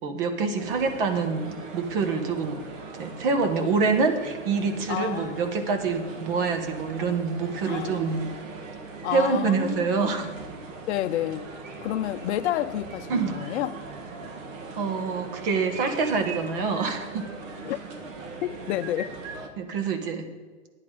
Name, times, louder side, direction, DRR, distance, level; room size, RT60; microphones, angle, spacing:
voice 1, 0.0-2.6 3.0-8.2 9.1-10.3 13.1-13.4 14.8-17.3 19.6-20.3, right 4 dB, 45° right, 1.5 m, -26 dB
sound 1, 0.6-19.5, right 3 dB, 75° right, 1.9 m, -40 dB
voice 2, 4.9-5.6 7.7-8.0 9.0-10.2 10.8-11.5 11.8-13.8 17.6-17.8 18.4-19.2, left 13 dB, 60° left, 0.6 m, -30 dB
11.0 x 9.7 x 5.0 m
hypercardioid pair, 150°, 39 cm